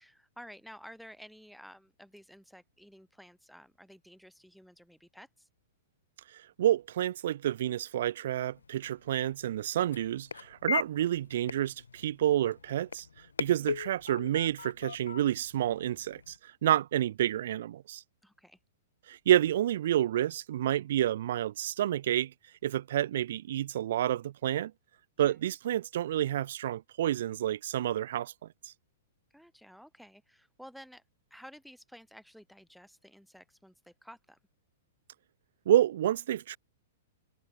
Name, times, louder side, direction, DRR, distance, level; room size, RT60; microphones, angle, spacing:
voice 1, 0.0-5.5 13.5-13.7 18.2-18.6 25.3-25.4 29.3-31.0 31.3-34.4, equal, ahead, 6.2 m, -53 dB
voice 2, 6.6-13.1 13.4-18.0 19.1-22.3 22.6-24.7 25.2-28.3 28.6-28.7 35.7-36.6, right 12 dB, 60° right, 0.3 m, -29 dB
sound 1, 8.5-16.4, left 6 dB, 80° left, 0.4 m, -40 dB
hypercardioid pair, 110°, 0 cm